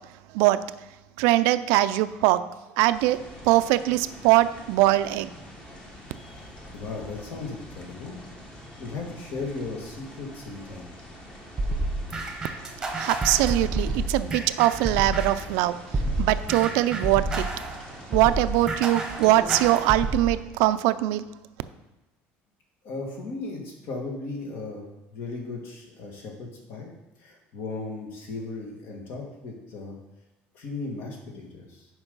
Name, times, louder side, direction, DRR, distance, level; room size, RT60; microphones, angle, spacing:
voice 1, 1.2-2.4 2.8-3.2 3.4-5.3 12.9-17.5 18.1-21.3, right 16 dB, 80° right, 13 dB, 0.4 m, -22 dB
sound 1, 2.9-19.7, left 1 dB, 20° left, 1.2 m, -45 dB
voice 2, 6.7-8.2 8.8-10.9 22.8-26.9 27.2-30.0 30.5-31.9, left 3 dB, 55° left, 0 dB, 1.9 m, -36 dB
sound 2, 11.6-15.5 15.9-20.3, right 2 dB, 10° right, 1.1 m, -29 dB
7.1 x 5.3 x 5.4 m, 0.99 s
cardioid pair, 165°, 5 cm